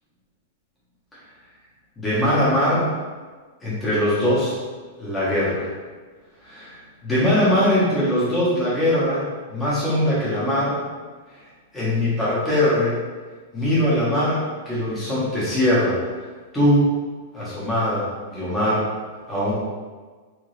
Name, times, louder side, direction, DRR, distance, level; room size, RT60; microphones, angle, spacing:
voice 1, 2.0-2.9 3.6-4.5 5.0-5.7 6.4-9.2 9.5-10.8 11.7-13.0 13.5-16.0 16.5-16.9 17.3-18.8 19.3-19.5, left 1 dB, 10° left, -9 dB, 1.2 m, -21 dB
3.5 x 3.0 x 3.2 m, 1.4 s
supercardioid pair, 170°, 0 cm